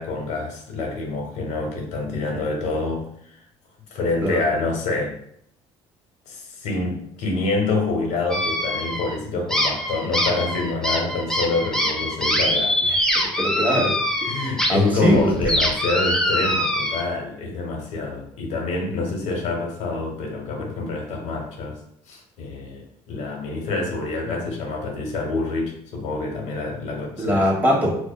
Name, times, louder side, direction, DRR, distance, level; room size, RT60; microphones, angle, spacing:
voice 1, 0.0-3.4 3.9-5.2 6.3-12.7 13.7-13.9 14.2-21.8 22.1-27.4, left 3 dB, 75° left, 1 dB, 1.0 m, -27 dB
sound 1, 8.3-9.2 9.5-14.7 15.0-17.0, equal, 5° left, 0.5 m, -23 dB
voice 2, 13.4-15.3 27.2-28.0, equal, 15° right, -3 dB, 1.1 m, -21 dB
4.5 x 2.0 x 2.2 m, 0.68 s
cardioid pair, 105°, 12 cm